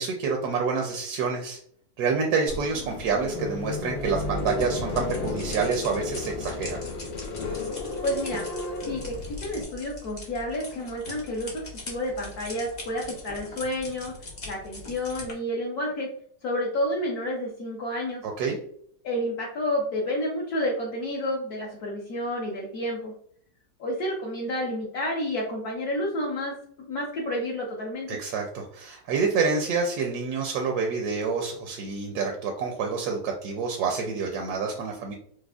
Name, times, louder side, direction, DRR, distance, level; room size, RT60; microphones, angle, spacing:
voice 1, 0.0-1.6 2.0-6.8 18.2-18.6 28.1-35.1, right 5 dB, 70° right, 2 dB, 0.9 m, -28 dB
sound 1, 2.5-9.6, left 3 dB, 90° left, 1.5 m, -33 dB
sound 2, 4.0-15.3, left 2 dB, 45° left, 0.5 m, -42 dB
voice 2, 8.0-8.5 8.8-14.1 14.5-16.1 16.4-18.2 19.0-23.1 23.8-28.2, left 1 dB, 65° left, -2 dB, 1.0 m, -30 dB
4.8 x 2.1 x 2.3 m, 0.64 s
omnidirectional pair, 2.0 m